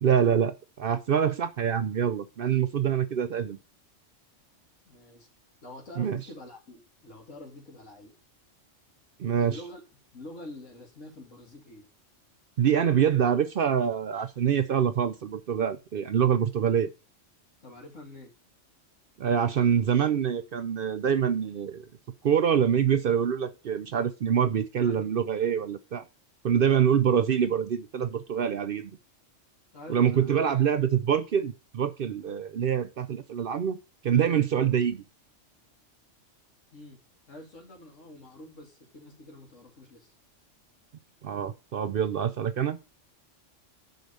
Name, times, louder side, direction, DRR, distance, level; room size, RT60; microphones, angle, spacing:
voice 1, 0.0-3.6 6.0-6.2 9.2-9.6 12.6-16.9 19.2-21.9 22.2-26.0 26.4-28.9 29.9-33.8 34.0-35.0 41.2-42.8, right 8 dB, 60° right, 0.7 m, -25 dB
voice 2, 2.8-3.3 4.9-5.3 5.6-8.1 9.4-9.8 10.1-11.9 13.8-13.9 14.1-14.3 17.6-18.3 24.8-25.1 29.7-30.4 36.7-37.0 37.3-40.1, left 1 dB, 80° left, 2.8 m, -46 dB
6.5 x 4.8 x 6.7 m
omnidirectional pair, 1.3 m